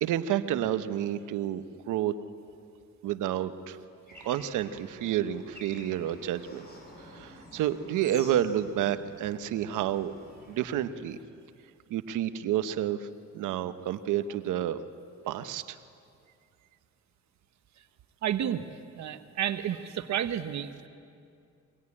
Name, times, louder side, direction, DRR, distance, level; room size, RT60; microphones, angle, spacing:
voice 1, 0.0-2.1 3.0-3.8 4.2-6.7 7.1-10.1 10.5-11.2 11.9-13.1 13.3-14.8 15.2-15.8, right 11 dB, 90° right, 10 dB, 1.1 m, -30 dB
Bird / Traffic noise roadway noise, 4.1-10.9, left 1 dB, 35° left, 6.7 m, -50 dB
voice 2, 18.2-18.7 19.0-20.9, right 10 dB, 65° right, 9 dB, 1.1 m, -31 dB
23.5 x 18.5 x 9.8 m, 2.4 s
cardioid pair, 90°, 30 cm